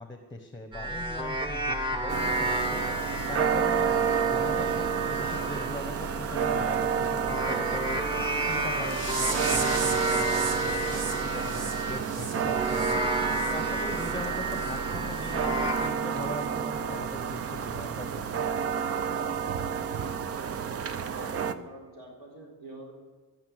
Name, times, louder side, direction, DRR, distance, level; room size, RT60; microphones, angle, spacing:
voice 1, 0.0-2.8 3.3-3.9 4.3-8.0 8.4-13.0 13.5-18.5, left 2 dB, 10° left, 7 dB, 1.0 m, -40 dB
sound 1, 0.7-12.1 12.6-15.9, right 1 dB, 15° right, 1.2 m, -32 dB
sound 2, 2.1-21.5, right 7 dB, 40° right, 0.7 m, -30 dB
sound 3, 8.8-13.5 13.9-14.1 14.6-14.7 15.2-15.3 15.8-15.9, right 4 dB, 85° right, 2.0 m, -36 dB
voice 2, 21.1-22.9, right 2 dB, 65° right, 0 dB, 3.6 m, -45 dB
17.5 x 6.7 x 7.9 m, 1.4 s
cardioid pair, 135°, 35 cm